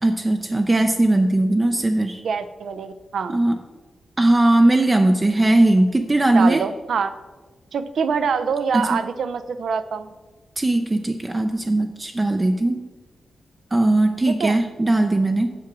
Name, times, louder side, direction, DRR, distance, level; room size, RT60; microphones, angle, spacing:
voice 1, 0.0-2.2 3.3-3.6 4.2-6.6 8.7-8.8 10.6-12.8 13.7-15.5, right 2 dB, 20° right, 5 dB, 0.4 m, -19 dB
voice 2, 2.2-3.3 6.3-7.1 7.7-10.1 14.4-14.6, right 6 dB, 70° right, 12 dB, 0.5 m, -25 dB
7.6 x 6.0 x 6.0 m, 1.3 s
wide cardioid pair, 145°, 0 cm